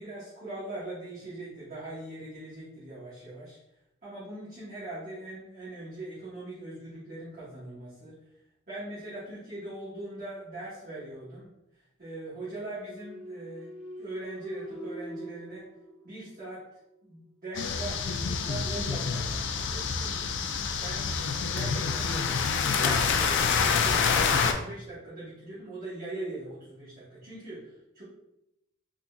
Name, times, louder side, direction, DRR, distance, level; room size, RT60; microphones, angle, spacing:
voice 1, 0.0-3.6 4.0-8.1 8.7-11.5 12.0-13.7 14.0-15.6 16.0-16.6 17.0-20.2 20.8-21.1 21.4-28.0, right 2 dB, 40° right, -11 dB, 1.2 m, -41 dB
sound 1, 12.8-16.6, equal, 10° right, 0.6 m, -43 dB
sound 2, 17.5-24.5, left 5 dB, 60° left, 0.4 m, -27 dB
3.7 x 2.8 x 2.4 m, 0.84 s
head